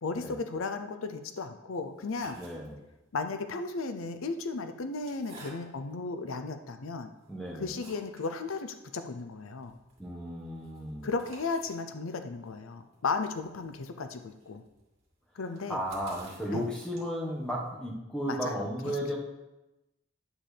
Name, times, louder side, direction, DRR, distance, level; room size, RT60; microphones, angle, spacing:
voice 1, 0.0-2.4 3.1-7.1 7.6-9.7 11.0-14.6 15.4-15.8 16.5-16.7 18.3-18.6 18.8-19.0, left 4 dB, 85° left, 9 dB, 0.6 m, -35 dB
sound 1, 1.8-3.1 3.9-6.0 6.6-6.7 7.2-8.3 8.6-8.7 9.0-9.1 9.4-17.3, right 2 dB, 30° right, 2.2 m, -54 dB
voice 2, 2.4-2.8 7.3-7.7 10.0-11.1 15.7-19.2, equal, 5° left, -4 dB, 1.4 m, -34 dB
9.8 x 7.3 x 3.4 m, 0.98 s
head